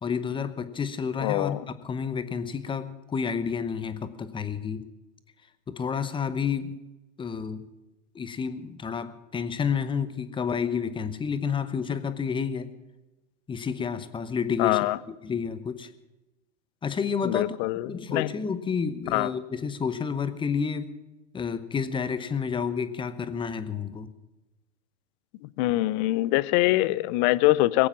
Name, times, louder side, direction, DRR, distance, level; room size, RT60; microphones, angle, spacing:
voice 1, 0.0-4.9 5.7-6.8 7.2-7.7 8.1-12.7 13.5-15.9 16.8-17.6 17.9-21.0 21.3-24.1, left 6 dB, 15° left, 11 dB, 0.9 m, -30 dB
voice 2, 1.2-1.6 14.6-15.0 17.2-18.3 19.1-19.3 25.6-27.9, left 18 dB, 40° left, 19 dB, 0.6 m, -24 dB
21.0 x 8.7 x 7.2 m, 1.0 s
hypercardioid pair, 115°, 36 cm